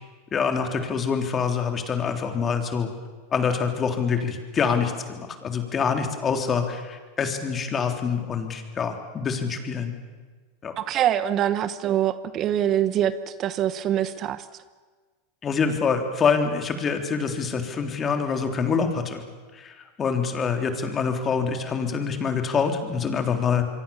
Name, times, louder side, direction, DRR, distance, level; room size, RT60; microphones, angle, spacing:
voice 1, 0.3-2.9 3.3-9.9 10.6-10.7 15.4-19.2 19.5-23.6, left 6 dB, 30° left, 5 dB, 3.6 m, -25 dB
voice 2, 10.8-13.1 13.4-14.4, right 11 dB, 40° right, 14 dB, 1.0 m, -24 dB
26.5 x 23.0 x 7.2 m, 1.4 s
hypercardioid pair, 110°, 0 cm